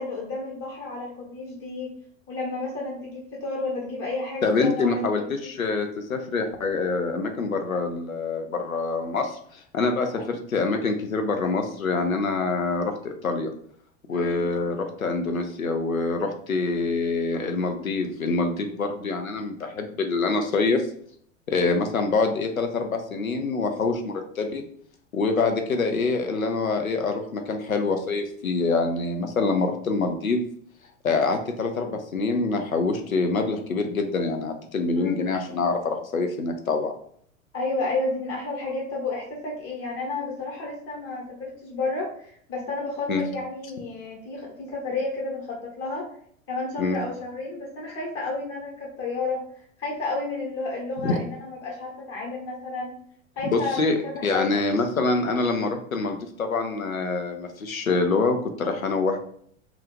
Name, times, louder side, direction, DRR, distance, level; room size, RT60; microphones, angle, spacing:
voice 1, 0.0-1.9 2.3-5.5 14.1-14.4 35.0-35.2 37.5-46.1 46.5-52.9 53.4-54.6, left 3 dB, 35° left, -3 dB, 1.1 m, -31 dB
voice 2, 4.4-13.5 14.1-20.9 21.5-24.6 25.1-30.4 31.0-36.9 43.1-43.3 46.8-47.0 51.0-51.2 53.5-59.2, left 3 dB, 90° left, 5 dB, 0.5 m, -25 dB
2.4 x 2.4 x 3.1 m, 0.63 s
figure-of-eight pair, 85°, 40 cm